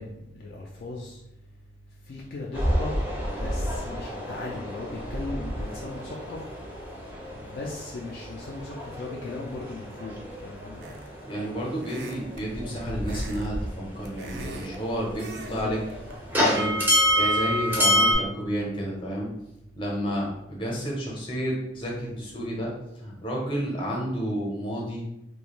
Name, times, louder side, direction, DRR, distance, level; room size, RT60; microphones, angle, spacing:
voice 1, 0.0-1.5 1.9-3.0 3.3-10.8 15.4-15.7, left 2 dB, 55° left, -2 dB, 0.3 m, -38 dB
sound 1, 2.5-13.9 14.1-18.2, equal, 10° right, 0.5 m, -28 dB
sound 2, 10.8-11.2 11.8-12.5 13.0-13.5 13.8-14.8 15.2-15.6 15.9-16.1, right 3 dB, 65° right, 0.4 m, -41 dB
voice 2, 11.2-15.8 16.3-16.8 17.2-19.3 19.7-25.0, equal, 30° left, -3 dB, 0.7 m, -31 dB
2.4 x 2.2 x 2.9 m, 0.87 s
head